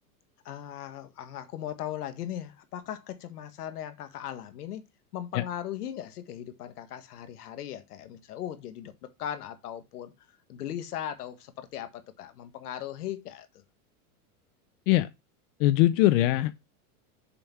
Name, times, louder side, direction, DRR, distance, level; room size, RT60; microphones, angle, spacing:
voice 1, 0.4-4.8 5.1-10.1 10.5-13.6, left 11 dB, 85° left, 1.6 m, -38 dB
voice 2, 15.6-16.6, left 15 dB, 55° left, 0.7 m, -22 dB
6.9 x 5.5 x 4.6 m
supercardioid pair, 130°, 45 cm